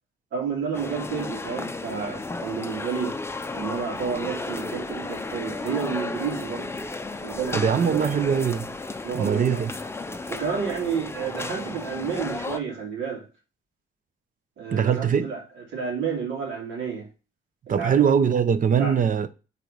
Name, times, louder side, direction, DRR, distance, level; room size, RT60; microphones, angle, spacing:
voice 1, 0.3-3.2 3.5-6.8 7.2-8.1 9.0-9.6 10.3-13.3 14.6-15.4 15.7-17.1 17.8-18.1 18.8-19.0, right 6 dB, 70° right, 2.8 m, -30 dB
sound 1, 0.7-12.6, left 3 dB, 10° left, 0.6 m, -33 dB
voice 2, 7.5-8.7 9.1-9.7 14.7-15.3 17.7-19.3, right 7 dB, 45° right, 0.7 m, -22 dB
4.7 x 4.1 x 5.2 m
cardioid pair, 90°, 20 cm